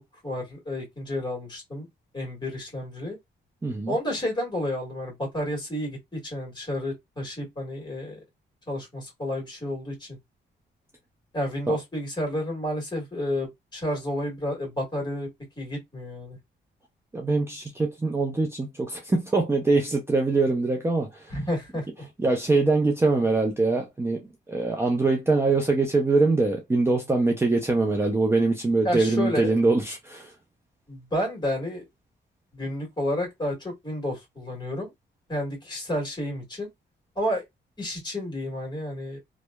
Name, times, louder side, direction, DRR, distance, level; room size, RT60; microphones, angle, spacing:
voice 1, 0.2-1.9 2.1-3.2 3.9-8.2 8.7-10.2 11.3-15.3 15.6-16.4 21.3-21.8 28.8-29.5 30.9-31.8 32.5-34.9 35.3-36.7 37.1-37.4 37.8-39.2, left 1 dB, 25° left, 1.6 m, -30 dB
voice 2, 3.6-4.0 11.7-11.8 17.1-21.3 22.2-30.3, right 3 dB, 15° right, 0.4 m, -23 dB
2.7 x 2.1 x 2.2 m
cardioid pair, 110°, 19 cm